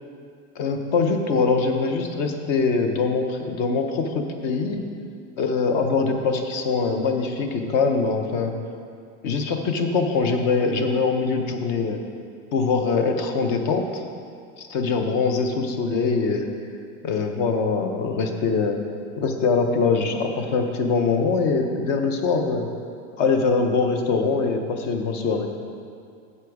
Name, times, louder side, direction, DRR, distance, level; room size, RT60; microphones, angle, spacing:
voice 1, 0.6-4.8 5.4-8.6 9.2-12.0 12.5-14.0 14.6-16.5 17.0-18.8 19.2-22.7 23.2-25.5, left 4 dB, 30° left, 5 dB, 0.6 m, -23 dB
9.7 x 7.0 x 4.7 m, 2.3 s
supercardioid pair, 180°, 35 cm